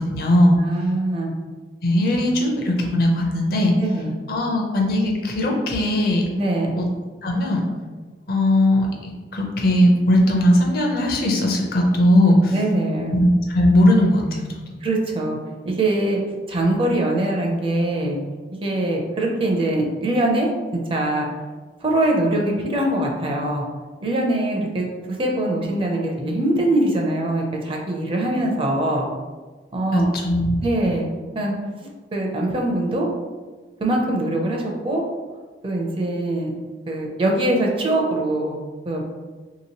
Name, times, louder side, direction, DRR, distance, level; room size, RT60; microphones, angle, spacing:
voice 1, 0.0-0.5 1.8-3.7 4.3-6.3 7.2-7.6 8.3-12.5 13.1-14.4 14.7-14.8 29.9-30.6, left 1 dB, 55° left, 0 dB, 0.6 m, -18 dB
voice 2, 0.6-1.3 3.8-4.1 6.3-6.8 12.5-13.2 14.8-15.4 15.7-16.2 16.5-18.2 18.5-21.3 21.8-23.6 24.0-24.9 25.2-29.1 29.7-30.1 30.6-31.1 31.3-31.6 32.1-33.1 33.8-35.0 35.6-36.5 36.9-38.6 38.9-39.0, right 1 dB, 30° right, 0 dB, 0.5 m, -22 dB
3.0 x 2.9 x 2.9 m, 1.3 s
head